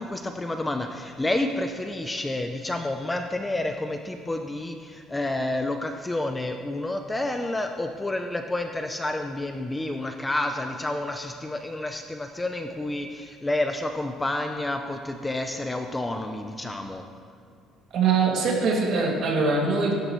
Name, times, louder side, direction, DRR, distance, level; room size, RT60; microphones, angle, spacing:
voice 1, 0.0-17.0, left 1 dB, 10° left, 5 dB, 0.4 m, -29 dB
voice 2, 17.9-19.9, right 4 dB, 50° right, -1 dB, 2.1 m, -22 dB
15.0 x 12.0 x 3.1 m, 2.3 s
cardioid pair, 170°, 0 cm